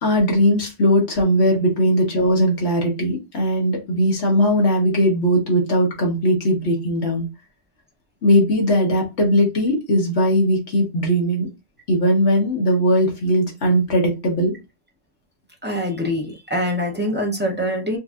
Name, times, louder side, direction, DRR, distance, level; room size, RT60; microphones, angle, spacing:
voice 1, 0.0-7.2 8.2-11.5 11.9-14.5, equal, 60° left, 1.4 m, -19 dB
voice 2, 15.6-18.0, equal, 15° right, 0.3 m, -24 dB
4.6 x 2.6 x 2.3 m
omnidirectional pair, 1.3 m